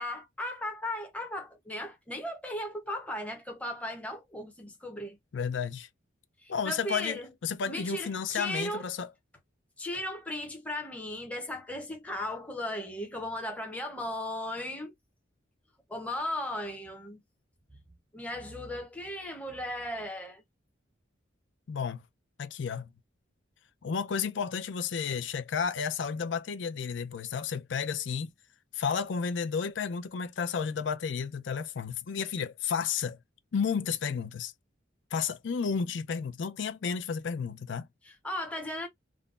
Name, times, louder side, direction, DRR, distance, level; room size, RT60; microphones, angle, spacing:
voice 1, 0.0-5.2 6.4-7.3 7.7-8.9 9.8-14.9 15.9-17.2 18.1-20.4 38.0-38.9, left 1 dB, 5° left, 0.7 m, -36 dB
voice 2, 5.3-5.9 6.5-9.1 21.7-22.0 22.4-22.9 23.8-28.3 28.7-33.2 33.5-34.5 35.1-37.9, left 6 dB, 70° left, 0.4 m, -32 dB
3.7 x 2.1 x 2.4 m
head